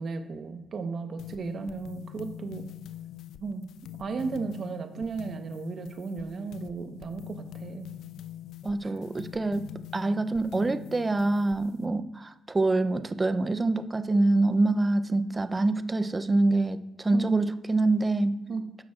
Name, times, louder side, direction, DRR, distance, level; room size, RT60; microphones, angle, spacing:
voice 1, 0.0-2.6 3.4-3.6 4.0-7.9 8.8-8.9 17.1-17.5 18.5-18.6, right 4 dB, 60° right, 7 dB, 1.0 m, -34 dB
sound 1, 1.2-11.9, left 12 dB, 80° left, 0.3 m, -44 dB
voice 2, 8.6-18.4, right 2 dB, 25° right, 11 dB, 0.6 m, -26 dB
14.0 x 5.9 x 2.4 m, 0.90 s
supercardioid pair, 60°, 0 cm